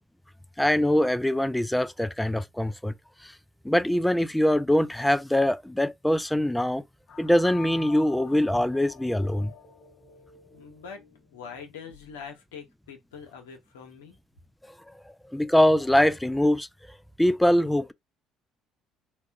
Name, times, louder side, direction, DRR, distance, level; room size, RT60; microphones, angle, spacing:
voice 1, 0.6-2.9 3.2-3.3 3.6-6.8 7.2-9.5 15.3-16.7 17.2-17.9, left 1 dB, 5° left, 0.4 m, -23 dB
sound 1, 7.1-12.3, left 7 dB, 60° left, 1.0 m, -48 dB
voice 2, 10.5-11.0 11.3-14.2, left 6 dB, 85° left, 1.0 m, -43 dB
3.3 x 2.4 x 3.5 m
hypercardioid pair, 65°, 0 cm